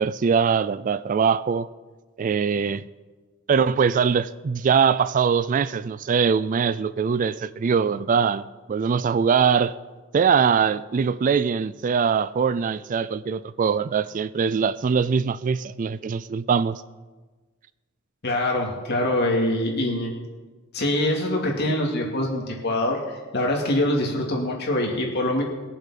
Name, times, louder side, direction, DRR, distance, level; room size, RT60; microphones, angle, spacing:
voice 1, 0.0-1.7 2.2-2.8 3.5-9.7 10.1-16.8, right 6 dB, 40° right, 16 dB, 0.3 m, -22 dB
voice 2, 18.2-20.1 20.7-25.4, left 1 dB, 50° left, -1 dB, 2.7 m, -24 dB
21.0 x 7.3 x 5.8 m, 1.3 s
head